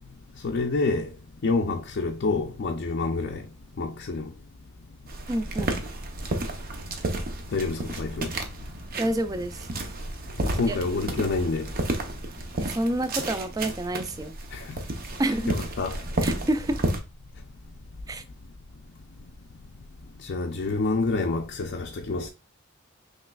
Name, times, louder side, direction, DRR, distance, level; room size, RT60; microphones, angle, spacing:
voice 1, 0.4-1.1 1.4-3.4 3.8-4.3 7.5-8.3 10.4-11.7 14.5-14.6 15.5-16.0 20.2-22.3, left 3 dB, 50° left, 0.5 m, -27 dB
sound 1, 5.1-17.0, right 2 dB, 45° right, 0.7 m, -32 dB
voice 2, 5.3-5.8 9.0-9.7 10.7-10.8 12.6-14.4 15.2-15.5 16.2-16.8 18.1-18.2, right 1 dB, 15° right, 0.3 m, -28 dB
5.6 x 3.1 x 2.3 m
head